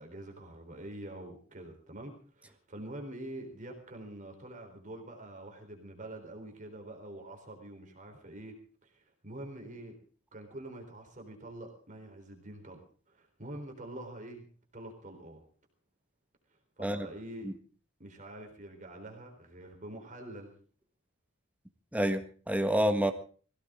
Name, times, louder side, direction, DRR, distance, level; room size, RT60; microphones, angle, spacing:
voice 1, 0.0-10.0 10.3-14.5 14.7-15.4 16.5-17.5 18.0-20.5, right 1 dB, 40° right, 3 dB, 3.9 m, -46 dB
voice 2, 21.9-23.1, equal, 5° right, 7 dB, 1.5 m, -28 dB
22.0 x 16.5 x 3.7 m, 0.41 s
head